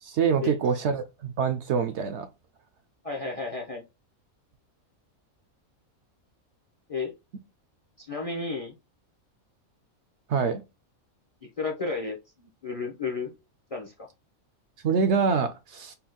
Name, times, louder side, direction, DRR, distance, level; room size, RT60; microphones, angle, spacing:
voice 1, 0.0-2.3 10.3-10.6 14.8-16.0, right 6 dB, 65° right, 0.7 m, -25 dB
voice 2, 3.0-3.8 6.9-7.1 8.0-8.8 11.4-13.3 13.7-14.1, left 4 dB, 35° left, 0.6 m, -33 dB
4.3 x 2.3 x 3.8 m
omnidirectional pair, 1.4 m